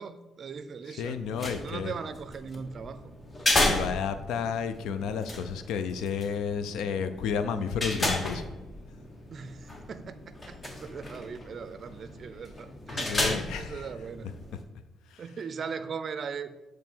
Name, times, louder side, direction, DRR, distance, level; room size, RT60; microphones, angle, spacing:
voice 1, 0.0-1.2 1.5-3.1 9.3-14.3 15.2-16.5, right 6 dB, 50° right, 0.4 m, -39 dB
voice 2, 1.0-1.9 3.6-8.4 12.9-13.9 15.1-15.2, left 6 dB, 85° left, 0.4 m, -31 dB
sound 1, 1.1-14.6, left 1 dB, 30° left, 1.1 m, -34 dB
7.3 x 3.1 x 4.5 m
cardioid pair, 90°, 0 cm